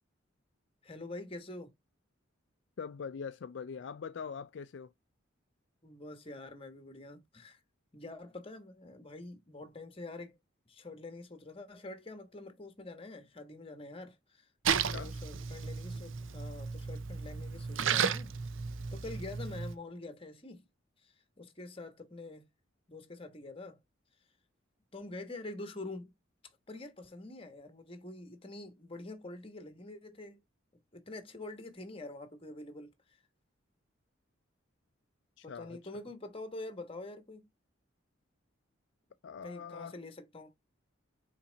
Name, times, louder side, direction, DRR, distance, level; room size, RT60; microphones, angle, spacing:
voice 1, 0.8-1.7 5.8-7.6 7.9-10.4 10.7-14.5 14.9-18.3 18.9-20.7 21.0-22.5 22.9-23.8 24.9-26.1 26.4-30.4 30.9-33.2 35.4-37.5 39.4-40.5, left 2 dB, 25° left, 1.2 m, -46 dB
voice 2, 2.8-4.9 14.8-15.1 35.4-35.8 39.2-40.0, left 6 dB, 60° left, 0.4 m, -42 dB
Splash splatter, 14.6-19.7, right 6 dB, 75° right, 0.6 m, -34 dB
5.7 x 4.3 x 3.9 m
head